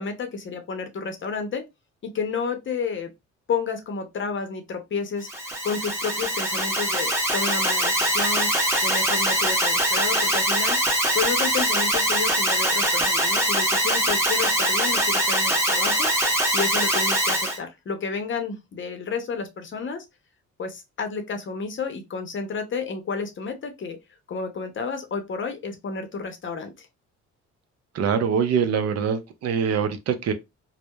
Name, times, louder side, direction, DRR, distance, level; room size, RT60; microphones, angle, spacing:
voice 1, 0.0-1.7 2.1-3.1 3.5-5.3 5.6-8.5 8.8-10.8 11.1-16.1 16.5-20.0 20.6-24.0 24.3-26.9, left 5 dB, 40° left, 0.7 m, -31 dB
Alarm, 5.2-17.6, right 1 dB, 10° right, 0.9 m, -23 dB
voice 2, 27.9-30.3, right 7 dB, 55° right, 0.5 m, -24 dB
2.8 x 2.1 x 2.2 m
cardioid pair, 90°, 30 cm